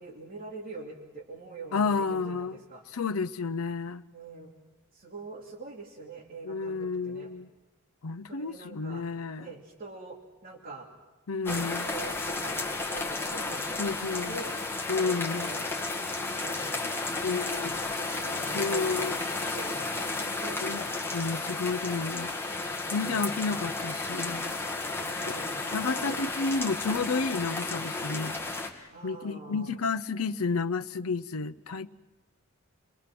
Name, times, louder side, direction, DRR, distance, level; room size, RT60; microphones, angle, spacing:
voice 1, 0.0-2.8 4.1-4.5 4.9-7.3 8.3-9.0 9.4-10.9 11.4-13.7 14.2-14.5 14.9-15.7 16.4-16.5 17.1-21.0 22.9-23.9 25.0-26.2 28.9-29.8, right 3 dB, 40° right, 2.8 m, -44 dB
voice 2, 1.7-2.6 2.9-4.0 6.5-7.5 8.0-9.5 11.3-11.8 13.8-14.4 14.9-15.5 17.2-17.8 18.5-19.2 20.6-20.8 21.1-22.3 22.9-24.5 25.7-28.4 28.8-31.9, left 4 dB, 75° left, 0.7 m, -31 dB
sound 1, 11.5-28.7, left 3 dB, 10° left, 1.8 m, -33 dB
29.0 x 21.5 x 6.0 m
head